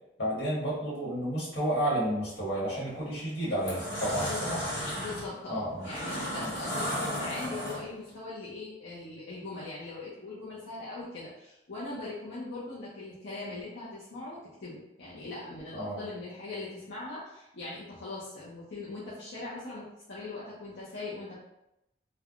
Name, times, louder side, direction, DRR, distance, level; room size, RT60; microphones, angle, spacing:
voice 1, 0.2-4.6 5.5-5.9 6.4-6.5 15.7-16.0, right 1 dB, 70° left, -8 dB, 1.4 m, -31 dB
sound 1, 2.7-2.9 3.4-8.1, equal, 50° left, 1.0 m, -34 dB
voice 2, 4.1-4.6 4.9-21.4, left 2 dB, 90° left, -8 dB, 0.7 m, -41 dB
3.2 x 2.1 x 2.4 m, 0.87 s
head